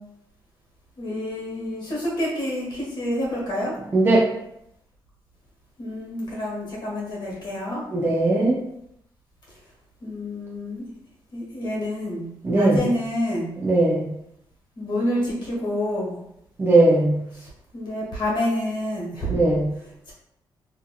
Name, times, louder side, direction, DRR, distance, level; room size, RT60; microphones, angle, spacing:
voice 1, 1.0-3.8 5.8-7.8 10.0-10.8 11.3-13.5 14.7-16.2 17.3-19.3 20.1-20.2, left 1 dB, 65° left, -4 dB, 1.2 m, -28 dB
voice 2, 3.9-4.2 7.9-8.6 12.4-12.8 13.6-14.1 16.6-17.2 19.3-19.7, right 2 dB, 25° right, -4 dB, 0.5 m, -18 dB
2.7 x 2.6 x 2.3 m, 0.79 s
cardioid pair, 110°, 8 cm